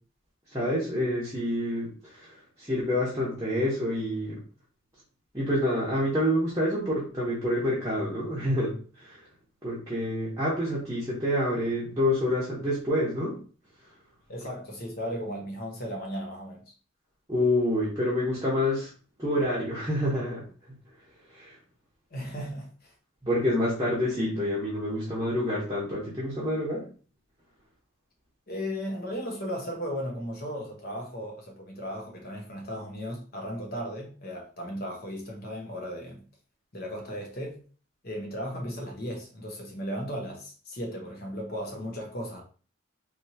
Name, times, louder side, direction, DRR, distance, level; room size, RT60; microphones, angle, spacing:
voice 1, 0.5-4.4 5.3-9.2 9.6-13.3 17.3-18.9 19.2-20.8 21.3-21.5 23.2-26.8, left 1 dB, 15° right, 1.1 m, -28 dB
voice 2, 14.3-16.7 22.1-22.9 28.5-36.2 36.7-37.6 38.0-42.4, equal, 50° left, 1.0 m, -36 dB
3.4 x 2.9 x 2.8 m
head